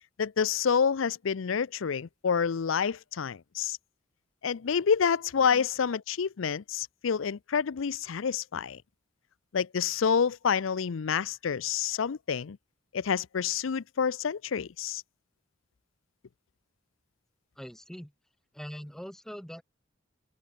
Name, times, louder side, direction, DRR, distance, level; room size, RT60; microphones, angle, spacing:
voice 1, 0.2-3.8 4.4-8.8 9.5-12.6 12.9-15.0, left 6 dB, 85° left, 0.5 m, -28 dB
voice 2, 17.6-18.1 18.5-19.6, equal, ahead, 0.6 m, -42 dB
open air
head